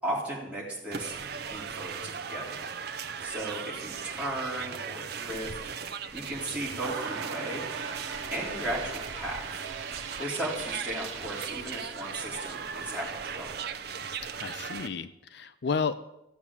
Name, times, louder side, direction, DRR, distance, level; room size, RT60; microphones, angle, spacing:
voice 1, 0.0-1.1 1.5-2.5 3.2-5.6 6.1-7.6 8.3-9.4 10.2-13.5, right 1 dB, 5° right, -6 dB, 3.9 m, -35 dB
sound 1, 0.9-14.9, right 6 dB, 50° right, 0.7 m, -38 dB
sound 2, 6.8-13.4, right 4 dB, 80° right, 1.4 m, -41 dB
voice 2, 14.4-15.9, left 5 dB, 55° left, 12 dB, 0.5 m, -31 dB
14.5 x 7.1 x 8.5 m, 0.90 s
head